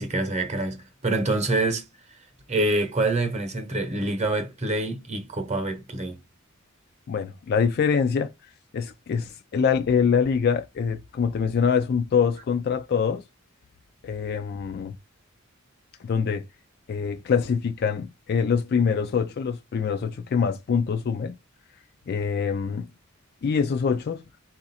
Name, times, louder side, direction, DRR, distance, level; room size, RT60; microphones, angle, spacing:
voice 1, 0.0-1.9 2.5-6.2, right 2 dB, 35° right, 0.9 m, -26 dB
voice 2, 7.1-8.3 8.7-13.2 14.0-15.0 16.0-16.5 16.9-21.4 22.1-22.9 23.4-24.2, left 6 dB, 50° left, 0.3 m, -24 dB
3.9 x 2.4 x 4.1 m
head